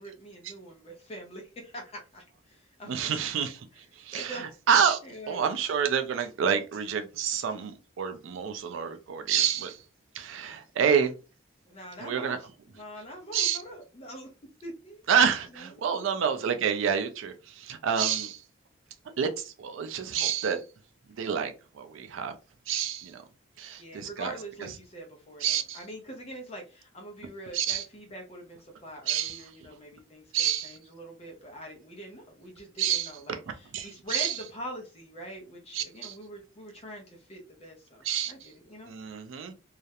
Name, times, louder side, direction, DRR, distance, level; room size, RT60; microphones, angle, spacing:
voice 1, 0.0-3.3 3.7-4.6 5.0-5.5 11.7-12.5 12.7-14.3 14.6-15.1 15.5-16.1 23.8-30.3 30.6-38.9, equal, 30° left, 0.5 m, -44 dB
voice 2, 2.9-3.7 4.0-5.0 5.3-9.8 10.1-11.1 12.0-12.4 13.3-13.6 15.1-18.4 19.2-20.6 21.2-22.3 22.7-23.2 23.6-24.3 25.4-25.8 27.5-27.9 29.1-29.4 30.3-30.7 32.8-33.1 33.7-34.3 35.7-36.1 38.0-38.5 38.9-39.5, right 7 dB, 70° right, 0.3 m, -28 dB
2.3 x 2.0 x 2.7 m
head